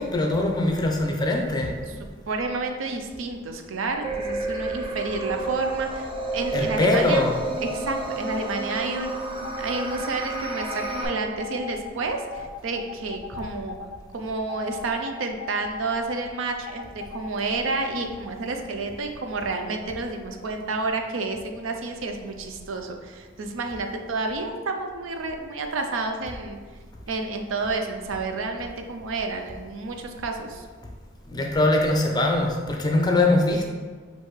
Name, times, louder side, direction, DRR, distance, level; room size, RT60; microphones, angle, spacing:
voice 1, 0.0-1.7 6.5-7.4 13.3-13.4 31.3-33.7, left 2 dB, 20° left, 1 dB, 0.5 m, -22 dB
voice 2, 2.3-7.3 7.6-13.8 14.1-26.6 27.1-30.7, right 3 dB, 80° right, 4 dB, 0.5 m, -30 dB
sound 1, 4.0-11.0, right 2 dB, 25° right, 0.6 m, -31 dB
sound 2, 9.4-10.1 10.6-10.9 11.4-14.0 14.5-16.2 16.7-17.3 17.8-18.1, left 6 dB, 90° left, 0.3 m, -38 dB
6.4 x 2.6 x 3.1 m, 1.5 s
head